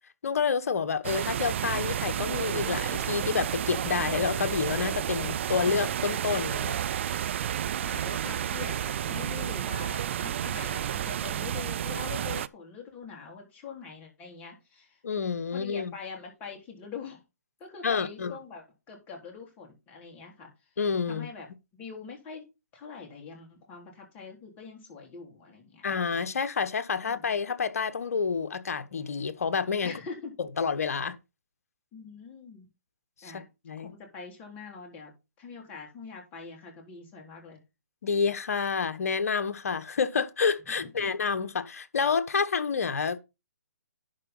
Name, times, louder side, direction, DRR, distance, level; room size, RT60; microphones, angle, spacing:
voice 1, 0.2-6.8 15.0-15.9 17.8-18.3 20.8-21.3 25.8-29.9 30.6-31.2 33.2-33.9 38.0-43.2, left 5 dB, 65° left, 1.2 m, -29 dB
sound 1, 1.0-12.5, right 10 dB, 45° right, 0.5 m, -31 dB
voice 2, 7.8-15.0 15.5-17.2 17.6-20.5 21.1-21.5 21.8-25.8 27.0-27.3 29.8-30.4 31.9-32.7 33.2-33.5 33.8-37.6 40.8-40.9, left 5 dB, 20° left, 3.5 m, -44 dB
11.0 x 4.7 x 5.4 m
figure-of-eight pair, 140°, 9 cm